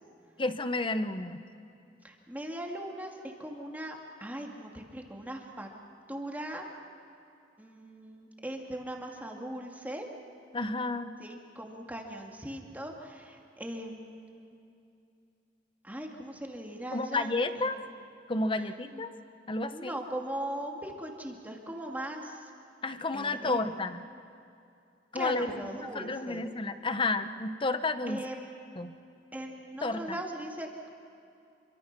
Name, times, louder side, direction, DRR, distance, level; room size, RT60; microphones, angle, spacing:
voice 1, 0.4-1.4 10.5-11.1 16.9-17.8 18.3-19.1 19.5-19.9 22.8-24.0 25.1-28.2 28.8-28.9 29.8-30.2, left 2 dB, 30° left, 10 dB, 0.9 m, -31 dB
voice 2, 2.0-5.7 6.1-6.7 7.6-10.1 11.2-14.6 15.8-17.8 18.6-19.0 19.7-22.5 23.1-23.6 25.1-26.5 28.1-28.8 29.3-30.9, right 1 dB, 10° right, 1 dB, 2.3 m, -40 dB
27.5 x 23.5 x 6.1 m, 2.6 s
head